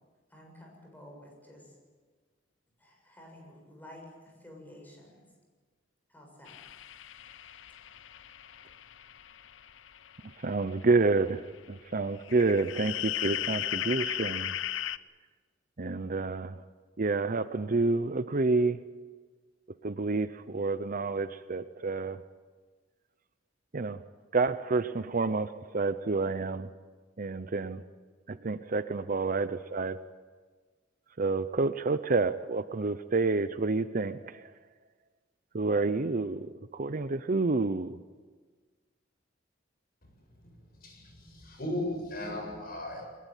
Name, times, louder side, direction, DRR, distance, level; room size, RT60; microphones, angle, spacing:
voice 1, 0.3-1.7 2.8-5.3 6.1-6.6, left 1 dB, 10° left, 7.3 m, -51 dB
sound 1, 6.5-11.0 11.4-11.5 12.2-15.0, left 12 dB, 75° left, 0.7 m, -37 dB
voice 2, 10.4-11.4 11.7-14.5 15.8-16.6 17.0-18.8 19.8-22.2 23.7-24.0 24.3-26.7 27.2-27.8 28.3-30.0 31.2-34.4 35.5-38.0, right 3 dB, 45° right, 0.7 m, -29 dB
voice 3, 40.8-43.1, left 1 dB, 50° left, 7.1 m, -36 dB
22.5 x 21.5 x 9.1 m
head